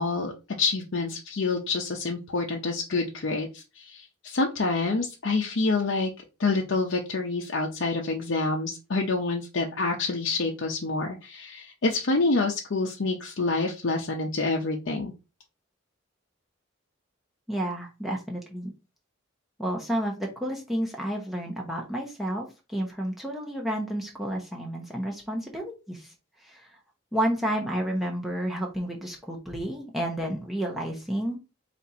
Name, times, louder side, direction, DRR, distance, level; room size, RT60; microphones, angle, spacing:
voice 1, 0.0-6.1 6.4-15.1, left 3 dB, 60° left, 1 dB, 0.6 m, -27 dB
voice 2, 17.5-18.7 19.6-26.1 26.4-26.8 27.1-31.4, right 1 dB, ahead, -1 dB, 0.8 m, -31 dB
4.1 x 2.5 x 4.2 m, 0.29 s
head